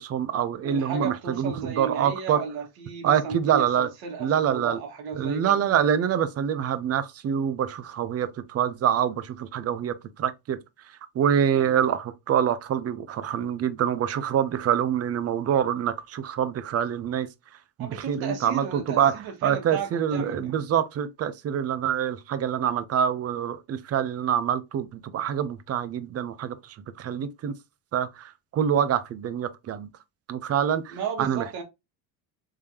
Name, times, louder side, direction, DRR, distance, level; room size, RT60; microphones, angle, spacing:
voice 1, 0.0-2.4 3.0-3.9 4.2-4.8 5.2-10.6 11.1-17.3 17.8-27.5 27.9-29.9 30.3-31.6, right 9 dB, 40° right, 0.6 m, -26 dB
voice 2, 0.6-5.6 11.5-11.7 17.8-20.5 30.9-31.6, right 6 dB, 65° right, 1.7 m, -34 dB
3.7 x 3.3 x 2.8 m
cardioid pair, 105°, 39 cm